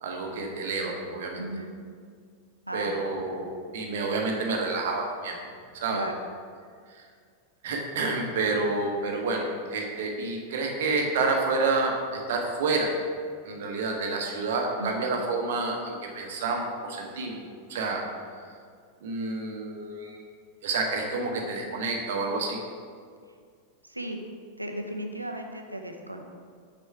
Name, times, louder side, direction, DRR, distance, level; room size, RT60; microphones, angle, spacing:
voice 1, 0.0-1.5 2.7-5.3 5.7-6.0 6.9-7.0 7.6-12.9 13.5-17.4 17.7-18.0 18.4-18.5 19.0-20.2 20.6-22.6, right 3 dB, 55° right, 1 dB, 1.0 m, -29 dB
voice 2, 1.4-1.7 2.7-2.9 5.9-6.1 8.4-8.5 14.8-15.0 23.8-24.2 24.6-26.2, right 1 dB, 85° right, 3 dB, 0.6 m, -35 dB
6.4 x 4.3 x 4.6 m, 2.1 s
figure-of-eight pair, 90°, 0 cm